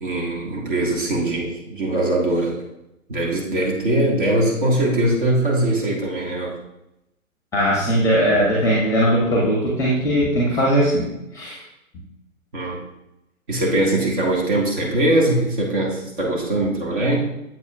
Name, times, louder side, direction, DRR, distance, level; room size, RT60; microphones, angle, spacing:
voice 1, 0.0-2.5 3.1-6.6 12.5-12.8 13.5-17.3, right 1 dB, 35° right, -2 dB, 1.6 m, -21 dB
voice 2, 7.5-11.1 11.3-11.6, equal, 5° left, -4 dB, 1.1 m, -19 dB
7.9 x 7.0 x 2.3 m, 0.87 s
figure-of-eight pair, 130°, 42 cm